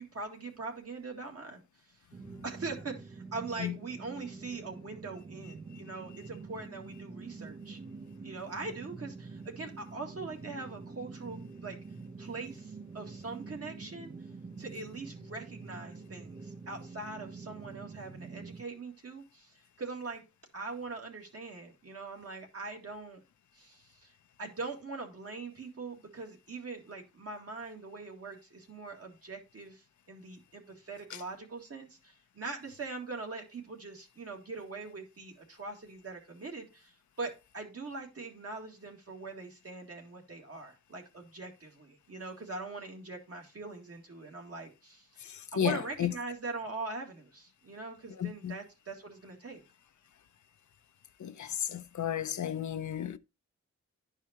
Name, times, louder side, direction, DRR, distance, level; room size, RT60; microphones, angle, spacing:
voice 1, 0.0-1.6 1.9-2.0 2.4-7.8 8.2-11.8 12.2-14.1 14.6-20.2 20.5-23.2 23.5-24.1 24.4-45.1 45.5-49.6, right 3 dB, 55° right, 2.0 m, -42 dB
sound 1, 2.1-18.6, right 4 dB, 30° right, 0.5 m, -46 dB
voice 2, 45.2-46.1 48.2-48.5 51.2-53.2, left 10 dB, 85° left, 0.6 m, -33 dB
12.0 x 4.8 x 2.9 m
wide cardioid pair, 130°, 29 cm